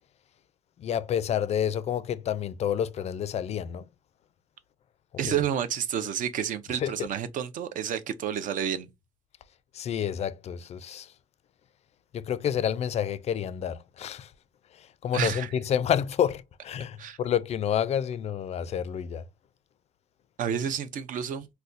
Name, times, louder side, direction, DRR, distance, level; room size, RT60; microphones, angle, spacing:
voice 1, 0.8-3.9 5.3-5.4 6.8-7.1 9.7-11.1 12.1-14.3 14.7-19.2, left 9 dB, 45° left, 0.4 m, -29 dB
voice 2, 5.2-8.9 15.1-15.5 17.0-17.2 20.4-21.5, right 9 dB, 60° right, 0.5 m, -30 dB
4.0 x 2.2 x 2.5 m
cardioid pair, 100°, 15 cm